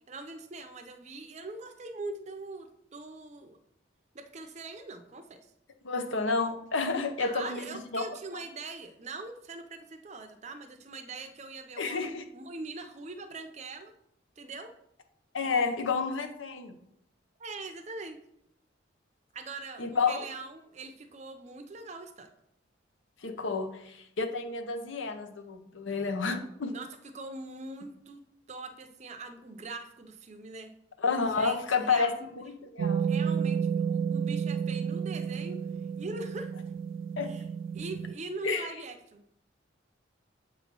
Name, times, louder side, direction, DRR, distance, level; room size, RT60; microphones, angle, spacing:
voice 1, 0.1-3.6 4.1-5.4 7.2-12.0 12.3-13.9 14.4-14.7 17.4-18.2 19.3-22.3 26.7-28.2 28.5-30.7 31.3-32.3 33.0-35.6 36.0-36.5 37.2-37.4 37.7-39.2, right 3 dB, 35° right, 7 dB, 0.5 m, -42 dB
voice 2, 5.8-8.0 11.8-12.2 15.3-16.7 19.8-20.2 23.2-26.8 31.0-33.1 37.2-37.3 38.4-38.7, left 4 dB, 80° left, 7 dB, 0.7 m, -30 dB
sound 1, 32.8-38.1, right 7 dB, 90° right, 0.3 m, -31 dB
7.4 x 3.0 x 5.2 m, 0.76 s
head